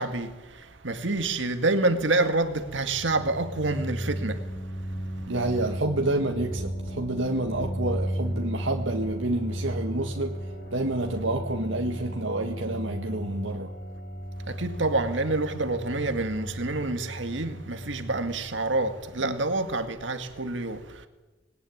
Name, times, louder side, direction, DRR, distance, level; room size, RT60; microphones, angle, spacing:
voice 1, 0.0-4.5 14.5-21.1, right 2 dB, 70° right, 2.0 m, -27 dB
sound 1, 2.9-19.3, equal, 55° left, 4.9 m, -35 dB
voice 2, 5.3-10.4 10.7-13.7 19.2-19.4, right 2 dB, 90° right, 1.8 m, -29 dB
26.5 x 20.0 x 9.6 m
head